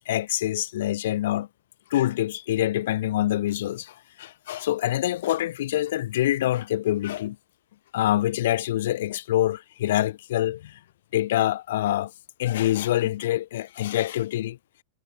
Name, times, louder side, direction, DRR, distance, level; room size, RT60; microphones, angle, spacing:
voice 1, 0.1-1.5 1.9-7.4 7.9-10.8 11.1-12.1 12.4-14.6, left 13 dB, 55° left, 0.6 m, -25 dB
figure-of-eight pair, 90°, 0 cm